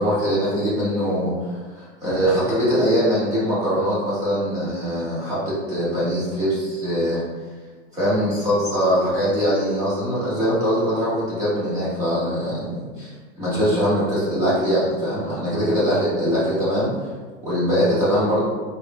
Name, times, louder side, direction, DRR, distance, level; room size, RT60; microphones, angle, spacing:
voice 1, 0.0-7.2 7.9-13.1 13.4-17.1 17.4-18.4, equal, 10° right, -9 dB, 0.3 m, -22 dB
3.7 x 2.0 x 3.3 m, 1.4 s
supercardioid pair, 165°, 37 cm